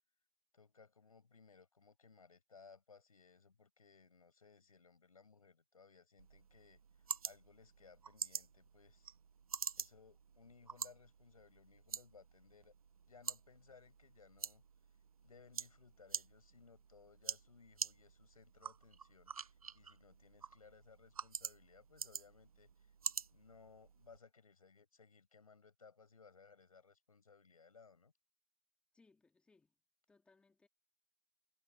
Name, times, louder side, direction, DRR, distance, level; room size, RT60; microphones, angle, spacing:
voice 1, 0.5-6.8 7.2-9.1 9.8-12.7 13.1-14.6 15.2-22.9 23.3-28.1, left 5 dB, 90° left, 7.1 m, -63 dB
sound 1, 6.2-24.2, right 6 dB, 85° right, 1.1 m, -47 dB
voice 2, 28.9-29.7 30.1-30.7, left 3 dB, 5° left, 2.8 m, -70 dB
hypercardioid pair, 140°, 18 cm